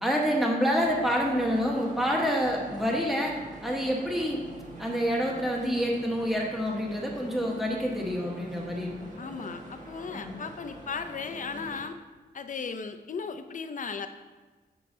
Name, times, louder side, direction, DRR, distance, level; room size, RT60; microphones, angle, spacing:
voice 1, 0.0-4.4 4.8-8.9 10.1-10.4, equal, ahead, -2 dB, 1.2 m, -27 dB
sound 1, 0.8-11.8, right 1 dB, 50° right, 1.5 m, -45 dB
voice 2, 9.2-12.0 12.3-14.1, left 5 dB, 50° left, 8 dB, 0.5 m, -36 dB
8.5 x 6.3 x 2.7 m, 1.3 s
wide cardioid pair, 125°, 17 cm